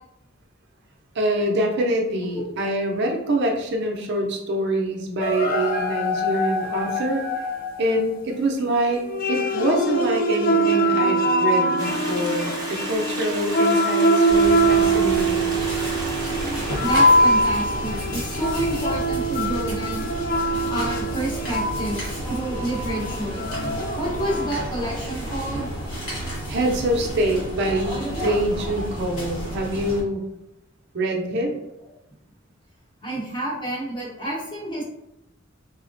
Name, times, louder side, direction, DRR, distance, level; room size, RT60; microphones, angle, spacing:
voice 1, 1.1-7.2 7.8-9.0 9.3-15.5 26.5-30.2 30.9-31.6, right 1 dB, 60° right, 1 dB, 0.5 m, -25 dB
sound 1, 5.2-7.8 9.0-24.5, right 1 dB, 45° left, 0.3 m, -23 dB
Stream, 11.8-17.8, right 2 dB, 20° right, 0.7 m, -34 dB
sound 2, 14.3-30.0, right 1 dB, 75° left, 1.2 m, -31 dB
voice 2, 16.8-20.1 20.7-23.5 24.0-25.7 33.0-34.8, right 1 dB, 25° left, -5 dB, 0.9 m, -29 dB
3.7 x 2.0 x 2.5 m, 0.89 s
head